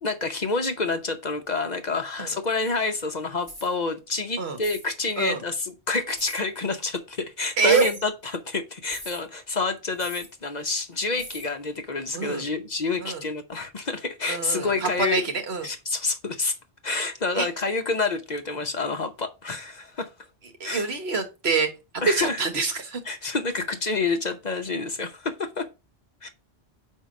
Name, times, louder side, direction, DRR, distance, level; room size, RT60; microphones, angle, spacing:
voice 1, 0.0-15.2 15.6-16.5 16.8-20.1 20.6-20.9 22.0-22.4 23.1-25.7 26.2-26.3, left 3 dB, 45° left, 0.9 m, -28 dB
sound 1, 3.4-3.7 4.6-4.9 6.2-6.4 7.6-8.0 8.9-9.2 10.0-10.3 11.2-11.5, equal, 20° right, 2.1 m, -41 dB
voice 2, 7.6-7.9 12.1-12.4 13.0-13.2 14.3-15.7 17.4-17.5 20.6-23.0, right 4 dB, 70° right, 1.5 m, -26 dB
5.4 x 4.5 x 5.2 m
omnidirectional pair, 1.1 m